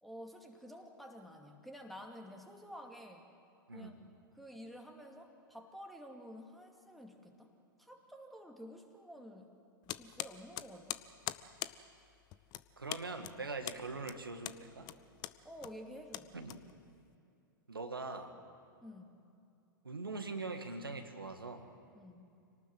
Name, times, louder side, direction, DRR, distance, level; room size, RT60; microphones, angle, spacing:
voice 1, 0.0-3.3 3.7-4.0 4.3-7.5 7.8-9.5 9.9-11.0 15.4-16.3 18.8-19.2 21.9-22.3, equal, ahead, 2 dB, 2.4 m, -51 dB
sound 1, 9.9-17.1, left 15 dB, 35° left, 0.8 m, -44 dB
voice 2, 12.8-14.9 16.3-16.6 17.7-18.3 19.8-21.7, right 3 dB, 85° right, 6 dB, 1.8 m, -42 dB
26.5 x 18.5 x 7.9 m, 2.6 s
figure-of-eight pair, 100°, 12 cm